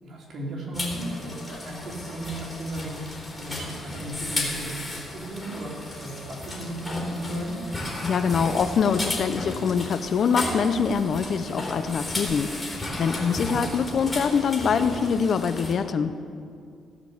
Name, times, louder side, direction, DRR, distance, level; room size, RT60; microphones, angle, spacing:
voice 1, 0.0-3.0 3.4-5.7 6.0-7.6 13.4-13.6, right 1 dB, 60° right, -3 dB, 3.4 m, -35 dB
sound 1, 0.7-15.7, left 1 dB, 15° left, 3.4 m, -34 dB
voice 2, 8.0-16.1, left 6 dB, 55° left, 11 dB, 0.6 m, -24 dB
15.5 x 5.3 x 7.9 m, 2.3 s
cardioid pair, 90°, 0 cm